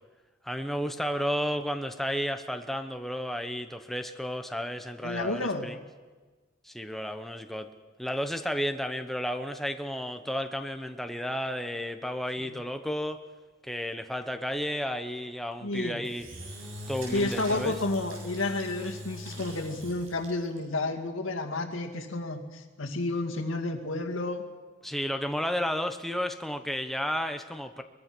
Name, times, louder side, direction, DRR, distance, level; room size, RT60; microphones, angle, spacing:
voice 1, 0.4-5.7 6.6-7.7 8.0-13.2 13.6-16.3 16.9-17.7 24.8-27.8, equal, ahead, 6 dB, 0.9 m, -32 dB
voice 2, 5.0-5.7 12.4-12.6 15.6-16.0 17.1-24.4, left 2 dB, 85° left, 3 dB, 2.2 m, -31 dB
Engine / Drill, 16.0-20.6, equal, 90° right, 7.4 m, -41 dB
23.0 x 21.5 x 6.1 m, 1.3 s
head